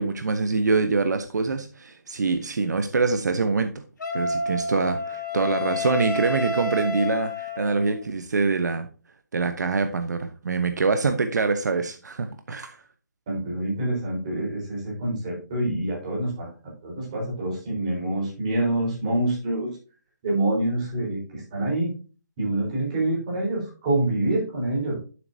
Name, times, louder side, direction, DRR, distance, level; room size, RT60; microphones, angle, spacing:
voice 1, 0.0-3.7 4.1-8.9 9.3-12.8, right 4 dB, 70° right, 1.0 m, -25 dB
Wind instrument woodwind instrument, 4.0-8.0, left 2 dB, 85° left, 3.5 m, -29 dB
voice 2, 13.3-16.5 16.8-19.7 20.2-21.9 22.4-25.0, right 1 dB, 25° right, 4.3 m, -26 dB
9.5 x 7.8 x 2.8 m
hypercardioid pair, 175°, 10 cm